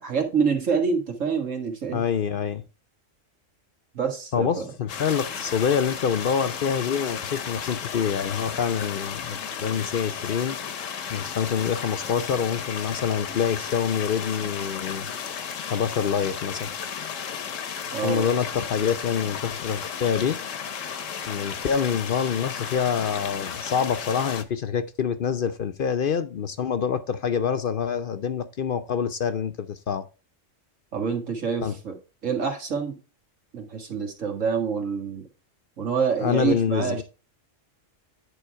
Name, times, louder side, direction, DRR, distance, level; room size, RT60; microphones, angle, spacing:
voice 1, 0.0-2.0 3.9-4.7 17.9-18.3 30.9-32.0 32.2-32.9 33.5-35.3 35.8-37.0, right 6 dB, 90° right, 2.3 m, -26 dB
voice 2, 1.9-2.6 4.3-10.6 11.1-15.1 15.6-16.7 18.0-20.4 21.3-30.1 31.6-31.7 36.2-37.0, left 7 dB, 55° left, 0.7 m, -26 dB
sound 1, 4.9-24.4, left 7 dB, 85° left, 1.3 m, -34 dB
10.0 x 3.9 x 4.6 m
omnidirectional pair, 1.3 m